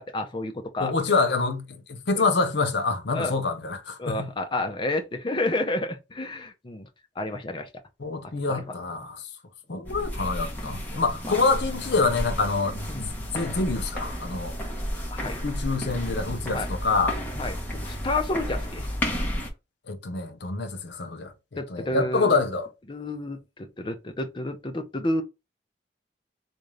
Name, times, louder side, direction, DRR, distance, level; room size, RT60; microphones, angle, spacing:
voice 1, 0.0-0.9 2.2-2.3 3.1-3.3 4.0-6.9 7.2-7.7 8.5-8.8 9.7-9.9 12.9-13.1 15.1-15.4 16.5-16.7 17.3-18.9 21.6-22.4 22.9-25.2, left 2 dB, 25° left, 0.6 m, -30 dB
voice 2, 0.8-4.3 8.0-9.2 9.7-14.5 15.4-17.2 19.9-22.7, left 4 dB, 70° left, 0.7 m, -26 dB
sound 1, 9.9-19.5, equal, 10° left, 1.0 m, -32 dB
3.7 x 2.6 x 3.2 m
head